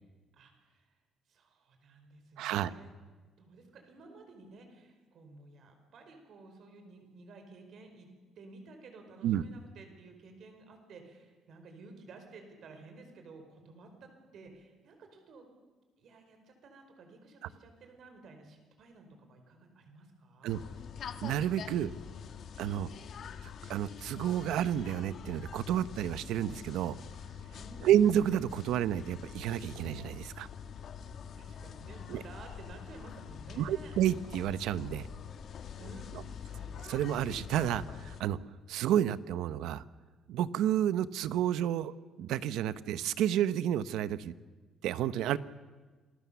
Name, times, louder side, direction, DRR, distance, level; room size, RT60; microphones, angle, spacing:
voice 1, 0.3-0.8 1.3-2.9 3.4-8.1 8.4-15.5 16.0-20.6 27.5-28.1 31.4-34.0 35.8-36.9, right 3 dB, 50° right, 5 dB, 4.8 m, -53 dB
voice 2, 2.4-2.7 9.2-9.4 20.4-20.6 21.2-22.0 22.6-22.9 23.7-27.0 27.8-30.5 32.1-32.2 33.6-35.1 36.9-38.4 38.7-39.8 40.3-41.9 42.2-44.3 44.8-45.4, right 11 dB, 75° right, 15 dB, 0.9 m, -30 dB
sound 1, 20.5-38.2, left 7 dB, 45° left, 1.3 m, -45 dB
27.5 x 20.5 x 7.1 m, 1.3 s
cardioid pair, 165°, 0 cm